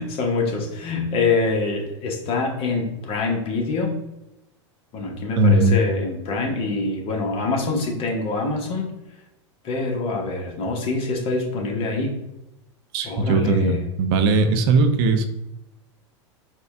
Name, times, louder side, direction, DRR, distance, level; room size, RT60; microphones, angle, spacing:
voice 1, 0.0-4.0 4.9-8.9 9.6-12.2 13.0-13.9, left 3 dB, 35° left, 1 dB, 1.1 m, -25 dB
voice 2, 5.4-5.8 12.9-15.3, right 3 dB, 50° right, 7 dB, 0.6 m, -18 dB
4.3 x 2.4 x 3.3 m, 0.93 s
hypercardioid pair, 95°, 15 cm